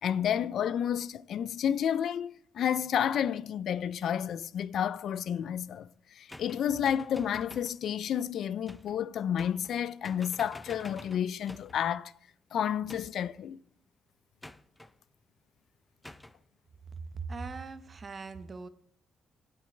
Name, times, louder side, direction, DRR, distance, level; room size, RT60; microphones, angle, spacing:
voice 1, 0.0-5.9 6.2-12.1 12.5-13.6, left 9 dB, 65° left, 0.4 m, -30 dB
sound 1, 6.3-7.8 8.7-9.0 9.4-9.8 10.0-11.8 12.9-13.4 14.4-14.9 16.0-16.4, left 1 dB, 10° left, 0.6 m, -49 dB
voice 2, 16.9-18.7, right 4 dB, 35° right, 1.0 m, -40 dB
19.0 x 7.8 x 3.3 m
cardioid pair, 90°, 0 cm